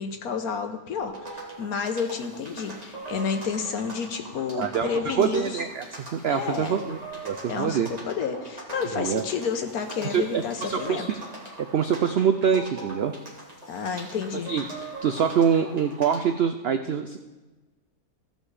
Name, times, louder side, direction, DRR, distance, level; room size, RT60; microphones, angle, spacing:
voice 1, 0.0-5.6 6.3-6.8 7.5-11.1 13.7-14.5, left 6 dB, 70° left, 6 dB, 1.4 m, -30 dB
sound 1, 1.0-16.4, right 2 dB, 25° right, 2.1 m, -41 dB
voice 2, 4.5-5.9 6.1-7.9 9.0-9.2 10.1-11.1 11.6-13.1 14.5-14.6 15.0-17.2, right 7 dB, 85° right, 8 dB, 0.5 m, -25 dB
16.0 x 5.3 x 4.8 m, 1.2 s
omnidirectional pair, 1.6 m